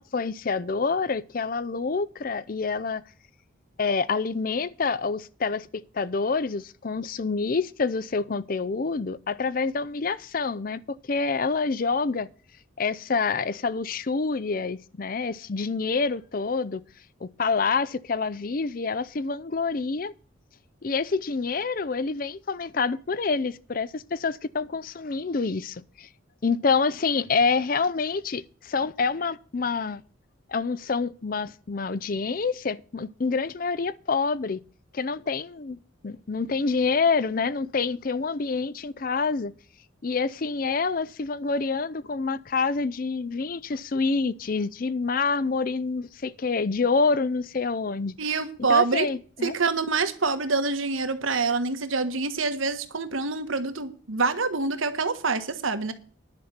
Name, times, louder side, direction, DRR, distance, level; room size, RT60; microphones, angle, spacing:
voice 1, 0.0-3.0 3.8-12.3 12.8-16.8 17.2-20.1 20.8-26.1 26.4-30.0 30.5-34.6 34.9-35.8 36.0-39.5 40.0-48.2 48.7-49.5, left 4 dB, 45° left, 0.5 m, -27 dB
voice 2, 48.2-49.1 49.4-55.9, right 4 dB, 85° right, 1.4 m, -26 dB
10.5 x 5.8 x 8.1 m
head